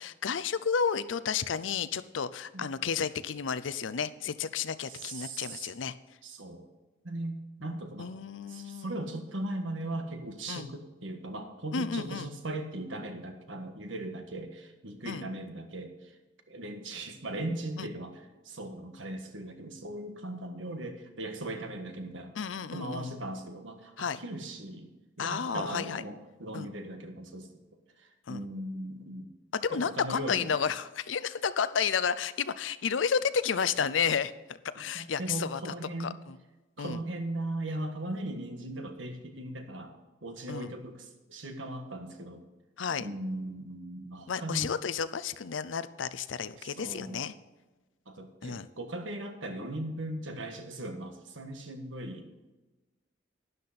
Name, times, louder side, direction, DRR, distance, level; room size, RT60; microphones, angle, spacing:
voice 1, 0.0-5.9 8.0-9.1 10.5-10.7 11.7-12.3 15.0-15.2 17.8-17.9 22.4-23.1 24.0-24.2 25.2-26.0 26.5-26.7 28.3-28.4 29.5-35.7 36.0-36.4 36.8-37.0 40.5-40.7 42.8-43.1 44.3-47.3 48.4-48.7, left 6 dB, 75° left, 15 dB, 0.6 m, -32 dB
voice 2, 4.8-5.7 6.2-6.7 7.0-8.1 8.5-16.1 16.5-22.3 22.7-24.9 25.2-27.6 28.0-29.3 29.7-30.5 34.7-36.2 36.8-39.9 40.2-42.4 43.0-44.7 46.6-47.3 48.1-52.2, right 1 dB, 85° right, 6 dB, 1.5 m, -38 dB
12.0 x 10.5 x 4.2 m, 1.1 s
head